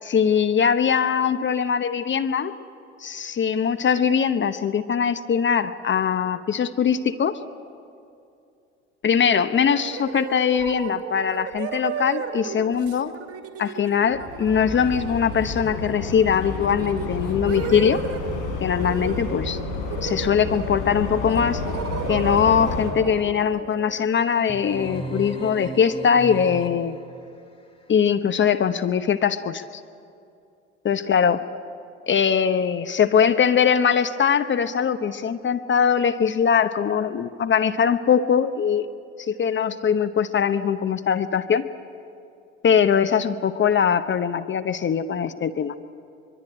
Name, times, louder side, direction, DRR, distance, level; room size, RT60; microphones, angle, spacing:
voice 1, 0.1-2.5 3.0-7.4 9.0-13.1 13.6-18.0 18.6-19.6 20.0-21.6 22.1-27.0 27.9-29.6 30.8-31.4 32.1-38.9 39.3-41.7 42.6-45.8, left 7 dB, 35° left, 11 dB, 1.0 m, -21 dB
sound 1, 9.8-18.4 18.8-19.3 19.6-20.8 21.3-25.0, right 8 dB, 45° right, 2.5 m, -35 dB
sound 2, 14.0-22.9, left 3 dB, 65° left, 6.7 m, -30 dB
sound 3, 24.5-27.1, right 2 dB, 15° left, 2.2 m, -35 dB
24.0 x 22.5 x 8.9 m, 2.5 s
hypercardioid pair, 65°, 34 cm